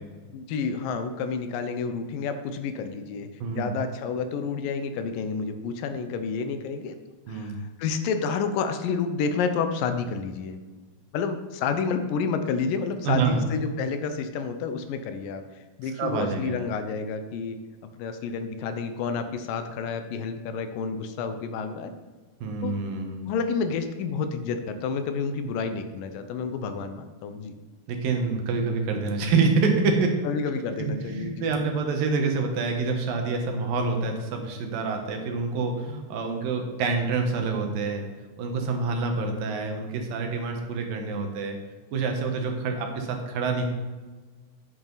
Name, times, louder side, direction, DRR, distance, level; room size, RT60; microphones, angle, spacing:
voice 1, 0.3-6.9 7.3-7.5 7.8-10.6 11.1-15.4 15.8-17.6 18.0-21.9 22.6-22.8 23.2-27.5 30.2-31.5, left 5 dB, 80° left, 8 dB, 2.4 m, -29 dB
voice 2, 3.4-3.7 7.3-7.6 13.0-13.4 15.8-16.6 22.4-23.3 27.9-30.1 30.8-38.0 38.4-41.6 41.9-43.7, right 4 dB, 85° right, 3 dB, 3.0 m, -27 dB
9.2 x 8.8 x 4.0 m, 1.3 s
omnidirectional pair, 3.9 m